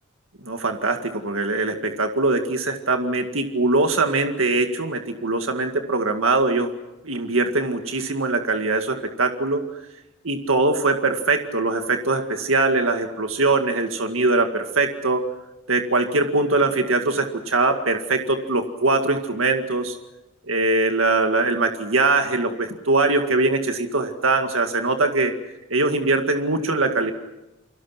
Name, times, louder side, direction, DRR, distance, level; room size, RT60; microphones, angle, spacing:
voice 1, 0.5-6.7 7.0-9.6 10.2-15.2 15.7-20.0 20.5-25.3 25.7-27.1, right 3 dB, 75° right, 5 dB, 2.0 m, -22 dB
29.5 x 24.0 x 6.0 m, 0.97 s
head